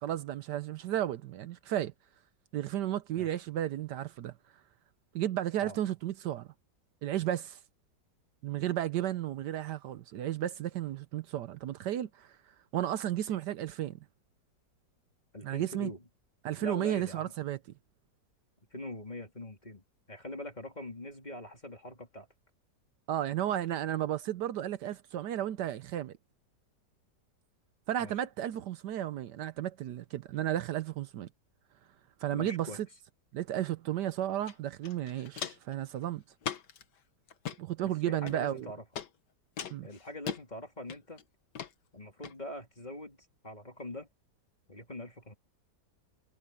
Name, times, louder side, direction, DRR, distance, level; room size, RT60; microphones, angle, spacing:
voice 1, 0.0-1.9 2.5-4.3 5.1-6.5 7.0-7.6 8.4-12.3 12.7-14.0 15.4-15.9 16.4-17.6 23.1-26.1 27.9-31.3 32.2-32.7 33.3-36.2 37.6-38.7 39.7-39.9, right 12 dB, 75° right, 1.3 m, -33 dB
voice 2, 15.3-16.0 16.6-17.3 18.7-22.3 28.0-28.1 32.3-32.8 37.8-38.8 39.8-41.2 41.9-44.1 44.7-45.3, left 1 dB, 25° left, 3.3 m, -43 dB
Walk footsteps, 34.5-34.6 34.8-35.7 36.4-36.8 37.3-37.6 38.3-38.6 39.0-39.1 39.6-40.4 40.9-41.2 41.5-41.7 42.2-42.3, left 8 dB, 70° left, 1.9 m, -39 dB
omnidirectional pair, 1.9 m